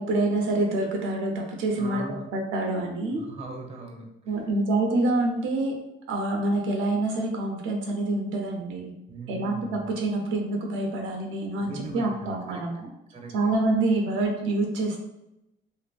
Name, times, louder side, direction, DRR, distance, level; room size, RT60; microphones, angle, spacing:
voice 1, 0.0-2.0 2.3-3.3 4.3-8.9 9.3-12.9 13.3-15.0, right 2 dB, 85° right, 1 dB, 0.5 m, -26 dB
voice 2, 1.8-2.3 3.1-4.5 9.1-9.9 11.6-12.9 13.1-13.5, right 2 dB, 30° right, 2 dB, 0.5 m, -40 dB
2.6 x 2.5 x 2.3 m, 0.90 s
cardioid pair, 90°, 20 cm